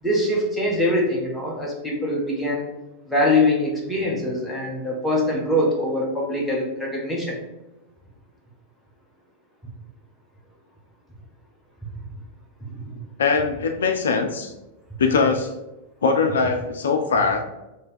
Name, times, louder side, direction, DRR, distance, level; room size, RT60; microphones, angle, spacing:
voice 1, 0.0-2.6 3.1-7.4, left 1 dB, 5° left, -4 dB, 1.2 m, -23 dB
voice 2, 13.2-14.5 15.0-15.5 16.0-17.4, left 4 dB, 65° left, 5 dB, 0.4 m, -21 dB
3.3 x 3.1 x 4.6 m, 1.0 s
figure-of-eight pair, 90°, 0 cm